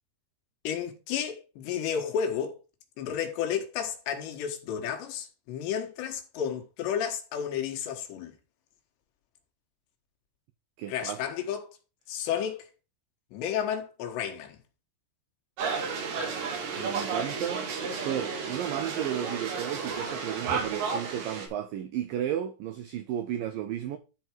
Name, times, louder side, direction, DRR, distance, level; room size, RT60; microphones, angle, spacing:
voice 1, 0.7-2.6 3.0-8.3 10.9-11.8 12.1-12.7 13.3-14.6, left 8 dB, 85° left, 3.7 m, -32 dB
voice 2, 10.8-11.2 16.8-24.0, right 10 dB, 90° right, 1.9 m, -33 dB
sound 1, 15.6-21.5, right 5 dB, 65° right, 3.9 m, -32 dB
12.0 x 4.8 x 4.6 m
omnidirectional pair, 4.9 m